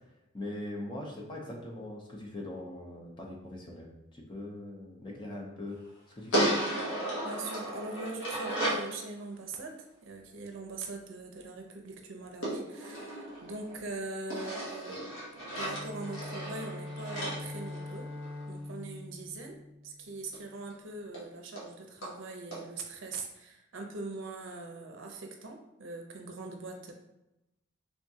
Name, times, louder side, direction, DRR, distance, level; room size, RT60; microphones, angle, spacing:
voice 1, 0.3-5.8 6.1-6.5, left 1 dB, 20° left, -1 dB, 0.6 m, -41 dB
sound 1, 6.3-8.9 12.4-13.8 14.3-18.4 20.3-20.4 20.7-20.8 21.1-21.2 21.6-21.7 22.0-22.1 22.5-22.6, right 1 dB, 75° left, 1.3 m, -34 dB
voice 2, 7.2-9.7 10.0-15.0 15.3-18.1 18.5-19.6 19.8-26.9, right 3 dB, 65° right, 2 dB, 0.6 m, -41 dB
Bowed string instrument, 15.5-20.4, left 2 dB, 40° right, 0.9 m, -43 dB
3.6 x 3.5 x 2.7 m, 0.93 s
head